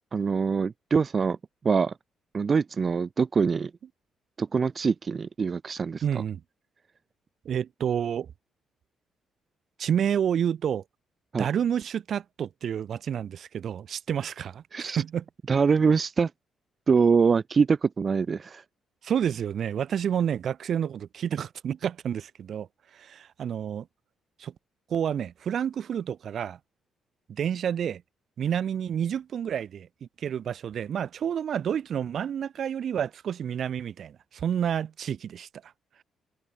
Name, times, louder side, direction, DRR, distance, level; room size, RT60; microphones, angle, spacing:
voice 1, 0.1-1.4 1.6-1.9 2.3-3.7 4.4-6.0 11.3-11.5 14.7-15.0 15.5-16.3 16.9-18.6, right 5 dB, 40° right, 0.5 m, -24 dB
voice 2, 6.0-6.4 7.5-8.3 9.8-10.8 11.4-15.2 19.0-22.7 22.9-23.9 24.4-24.5 24.9-26.6 27.3-28.0 28.4-35.5, right 8 dB, 60° right, 2.0 m, -29 dB
cardioid pair, 90°, 0 cm